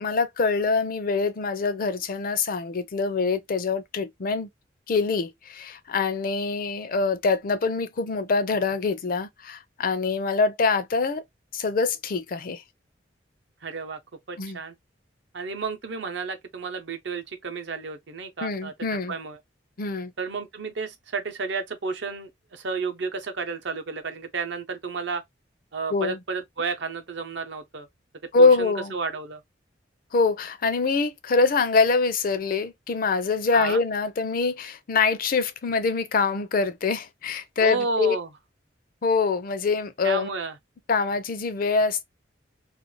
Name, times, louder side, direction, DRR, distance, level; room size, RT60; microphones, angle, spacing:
voice 1, 0.0-4.5 4.9-11.2 11.5-12.6 14.4-14.6 18.4-19.1 19.8-20.1 25.9-26.2 28.3-28.9 30.1-38.2 39.0-40.3 40.9-42.0, left 4 dB, 50° left, 0.4 m, -24 dB
voice 2, 13.6-14.0 14.3-14.8 15.3-18.7 19.1-19.4 20.2-25.2 25.7-27.9 28.4-29.4 33.5-33.8 37.6-38.3 40.0-40.6, right 4 dB, 70° right, 0.6 m, -32 dB
2.5 x 2.3 x 2.9 m
head